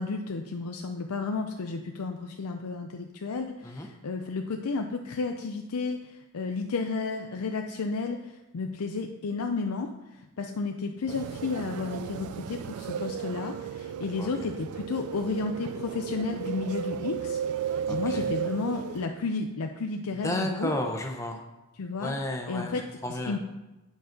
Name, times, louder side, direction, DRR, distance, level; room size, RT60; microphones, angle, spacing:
voice 1, 0.0-20.7 21.8-22.1 22.5-22.8 23.1-23.4, left 4 dB, 90° left, 4 dB, 0.5 m, -32 dB
sound 1, 11.1-19.1, right 7 dB, 85° right, 0.3 m, -34 dB
voice 2, 17.9-18.3 20.2-21.4 22.0-23.4, left 1 dB, 15° left, 3 dB, 0.7 m, -32 dB
9.2 x 4.0 x 5.1 m, 1.0 s
head